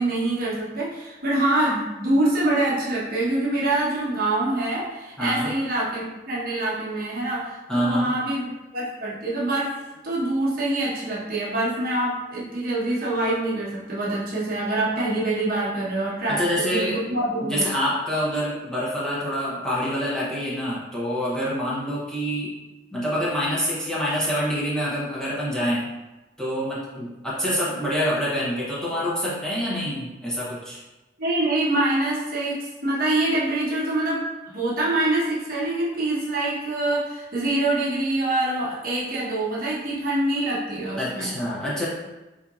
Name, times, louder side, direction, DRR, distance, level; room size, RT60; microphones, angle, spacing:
voice 1, 0.0-9.7 10.0-17.6 31.2-34.2 34.5-41.3, right 2 dB, 50° right, -6 dB, 1.0 m, -25 dB
voice 2, 5.2-5.5 7.7-8.2 16.3-17.0 17.4-22.5 22.9-25.9 26.4-30.8 41.0-41.9, equal, 5° left, -8 dB, 0.9 m, -26 dB
4.3 x 2.8 x 2.4 m, 1.1 s
head